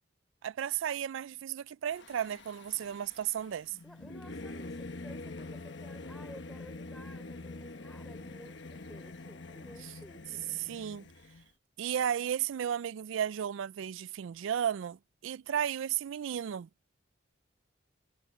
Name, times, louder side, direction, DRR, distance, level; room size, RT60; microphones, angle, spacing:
voice 1, 0.4-3.8 10.6-11.0 11.8-16.7, right 9 dB, 80° right, 0.3 m, -34 dB
Singing / Musical instrument, 1.9-11.5, left 2 dB, 65° left, 1.2 m, -45 dB
voice 2, 3.8-10.4, equal, ahead, 3.7 m, -53 dB
head